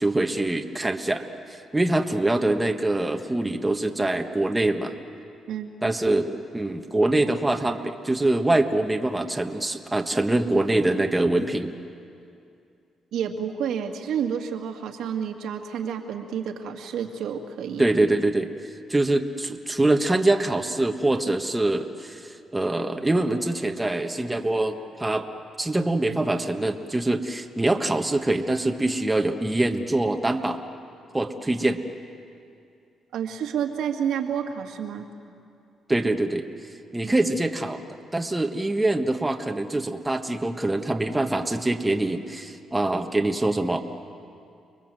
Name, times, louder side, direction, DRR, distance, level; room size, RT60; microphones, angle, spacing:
voice 1, 0.0-4.9 5.8-11.7 17.8-25.3 25.6-30.6 31.1-31.8 35.9-36.5 36.9-37.8 38.1-43.8, right 2 dB, 15° right, 4 dB, 1.4 m, -24 dB
voice 2, 5.5-5.9 13.1-17.9 33.1-35.1 37.0-37.1, right 8 dB, 80° right, 2 dB, 2.2 m, -30 dB
30.0 x 21.5 x 7.8 m, 2.5 s
cardioid pair, 90°, 0 cm